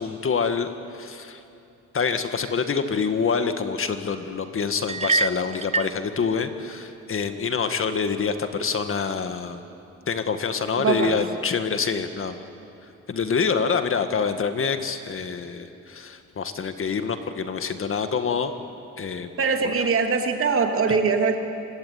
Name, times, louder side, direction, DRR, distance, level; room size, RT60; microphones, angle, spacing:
voice 1, 0.0-1.4 1.9-9.6 10.1-12.4 13.1-18.5 19.0-19.3, left 5 dB, 45° left, 8 dB, 1.8 m, -26 dB
sound 1, 4.9-6.0, right 4 dB, 20° right, 0.6 m, -25 dB
voice 2, 10.8-11.2 19.4-21.4, right 5 dB, 45° right, 4 dB, 2.9 m, -22 dB
25.0 x 20.5 x 9.6 m, 2.7 s
cardioid pair, 90°, 30 cm